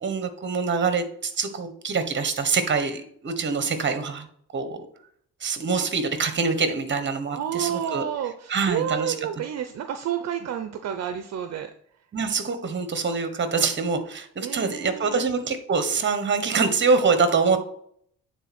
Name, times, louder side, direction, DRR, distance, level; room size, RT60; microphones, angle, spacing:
voice 1, 0.0-4.3 4.5-4.8 5.4-8.0 8.5-9.2 12.1-17.6, right 4 dB, 40° right, 9 dB, 1.3 m, -25 dB
voice 2, 7.3-11.7 14.4-15.3, right 9 dB, 60° right, 8 dB, 0.7 m, -30 dB
9.0 x 3.9 x 4.3 m, 0.65 s
cardioid pair, 90°, 30 cm